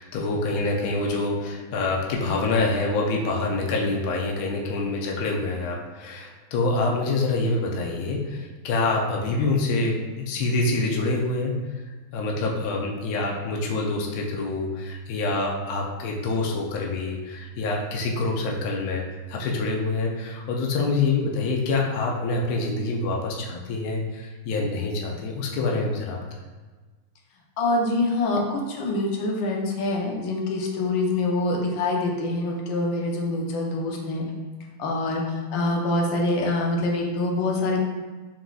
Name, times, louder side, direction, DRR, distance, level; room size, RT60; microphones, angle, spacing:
voice 1, 0.0-11.5 12.1-26.2, left 3 dB, 85° left, -1 dB, 0.8 m, -26 dB
voice 2, 27.6-34.2 34.8-37.8, left 2 dB, 70° left, -1 dB, 1.3 m, -25 dB
4.4 x 3.8 x 2.3 m, 1.3 s
omnidirectional pair, 2.4 m